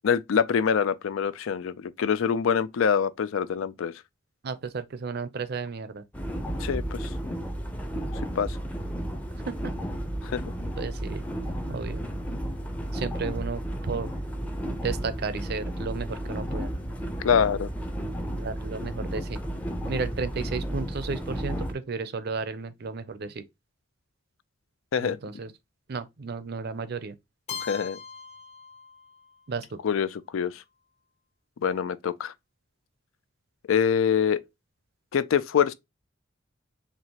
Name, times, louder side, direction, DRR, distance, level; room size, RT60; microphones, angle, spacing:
voice 1, 0.0-3.9 6.6-7.1 8.4-8.6 10.2-10.4 17.2-17.7 24.9-25.2 27.6-28.0 29.8-30.6 31.6-32.3 33.7-34.4 35.1-35.7, left 7 dB, 80° left, 0.4 m, -25 dB
voice 2, 4.4-6.0 9.5-9.7 10.8-11.2 11.7-12.1 12.9-14.1 14.8-16.7 18.3-19.4 19.9-23.4 25.0-25.5 25.9-27.1 29.5-29.8, right 4 dB, 50° right, 0.5 m, -33 dB
sound 1, 6.1-21.7, equal, 5° left, 0.5 m, -33 dB
Keyboard (musical), 27.5-29.4, left 6 dB, 35° left, 0.9 m, -40 dB
4.5 x 2.9 x 2.8 m
head